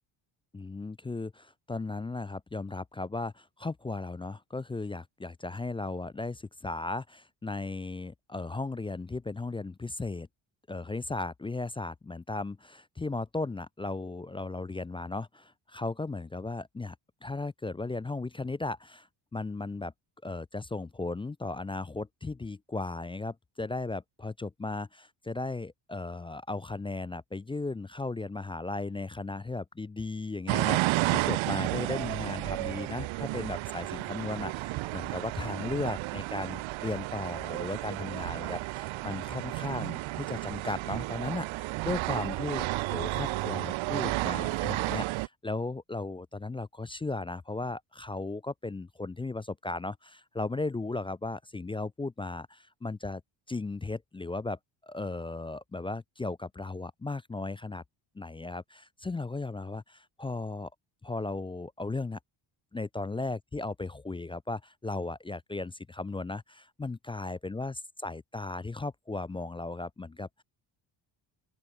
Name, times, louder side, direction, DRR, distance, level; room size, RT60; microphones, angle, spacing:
voice 1, 0.5-10.3 10.7-17.0 17.2-19.1 19.3-19.9 20.2-53.2 53.5-57.8 58.2-60.7 61.0-62.2 62.7-70.4, left 3 dB, 10° left, 0.3 m, -36 dB
sound 1, 30.5-45.3, right 19 dB, 75° right, 0.8 m, -32 dB
open air
cardioid pair, 125°, 48 cm